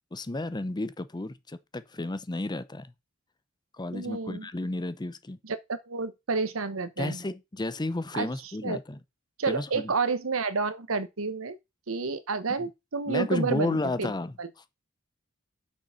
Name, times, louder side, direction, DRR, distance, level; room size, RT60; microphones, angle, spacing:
voice 1, 0.1-2.9 3.8-5.4 7.0-9.0 9.5-9.9 12.6-12.7 13.1-14.3, left 2 dB, 20° left, 0.6 m, -32 dB
voice 2, 3.9-4.5 5.4-7.2 8.1-8.3 8.6-8.8 9.4-11.6 11.9-14.1 14.4-14.5, right 4 dB, 80° right, 1.0 m, -30 dB
6.6 x 5.9 x 5.6 m
head